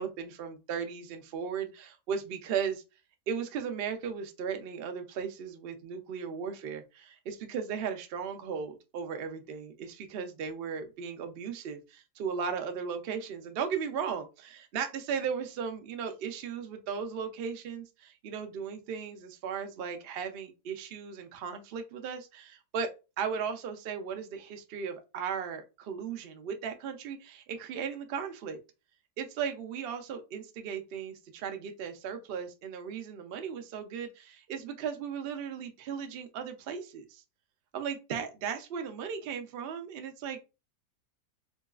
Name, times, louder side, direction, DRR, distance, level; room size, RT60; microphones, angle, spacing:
voice 1, 0.0-2.8 3.3-22.9 23.2-28.6 29.2-37.2 37.7-40.4, right 7 dB, 80° right, 6 dB, 0.5 m, -36 dB
3.7 x 2.3 x 2.3 m, 0.28 s
omnidirectional pair, 1.7 m